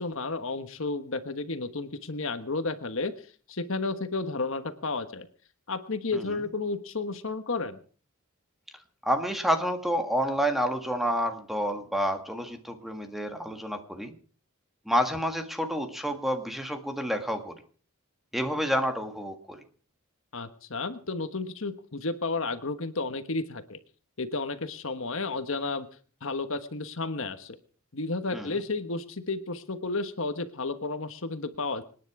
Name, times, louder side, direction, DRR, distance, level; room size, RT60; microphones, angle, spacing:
voice 1, 0.0-3.1 3.5-5.3 5.7-7.8 20.3-23.8 24.2-25.9 26.2-27.6 27.9-31.8, left 3 dB, 60° left, 10 dB, 1.4 m, -32 dB
voice 2, 9.0-14.1 14.9-17.5 18.3-19.6 28.3-28.5, equal, ahead, 6 dB, 1.8 m, -29 dB
26.5 x 10.0 x 4.9 m, 0.43 s
head